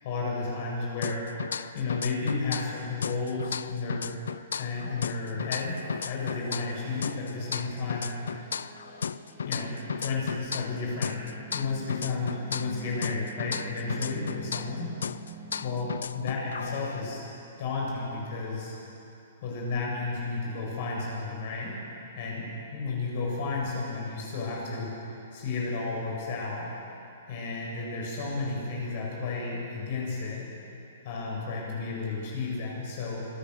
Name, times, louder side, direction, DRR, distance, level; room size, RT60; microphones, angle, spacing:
voice 1, 0.0-1.3 1.7-4.1 4.5-5.8 6.0-8.1 9.5-14.9 15.6-15.9 16.1-17.2 17.6-18.8 19.4-21.7 22.2-26.7 27.3-30.5 31.0-33.2, left 3 dB, 45° left, -3 dB, 7.1 m, -32 dB
sound 1, 1.0-2.8 3.0-6.8 7.0-10.8 11.0-14.8 15.0-17.0, left 7 dB, 90° left, 0.5 m, -35 dB
sound 2, 5.6-15.7, right 6 dB, 20° right, 4.7 m, -49 dB
26.0 x 17.0 x 6.7 m, 3.0 s
hypercardioid pair, 165°, 0 cm